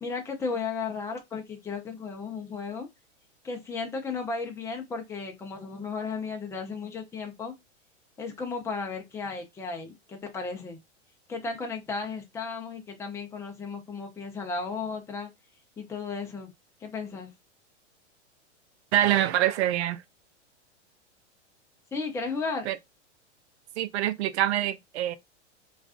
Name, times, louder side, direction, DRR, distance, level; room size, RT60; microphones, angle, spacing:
voice 1, 0.0-2.9 3.4-7.5 8.2-10.8 11.3-15.3 15.8-16.5 16.8-17.3 21.9-22.7, left 4 dB, 10° left, 0.5 m, -34 dB
voice 2, 18.9-20.0 22.7-22.8 23.8-25.2, right 12 dB, 65° right, 0.5 m, -25 dB
2.4 x 2.3 x 2.3 m
hypercardioid pair, 110°, 36 cm